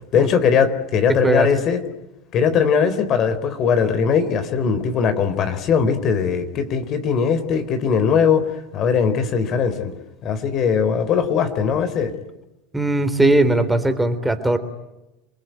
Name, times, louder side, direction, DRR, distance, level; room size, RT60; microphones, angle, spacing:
voice 1, 0.1-1.8 2.3-8.5 8.7-9.9 10.2-12.1, left 6 dB, 45° left, 9 dB, 3.9 m, -20 dB
voice 2, 1.1-1.5 12.7-14.6, right 2 dB, 5° right, 9 dB, 3.6 m, -19 dB
28.5 x 21.0 x 9.3 m, 0.97 s
hypercardioid pair, 90°, 0 cm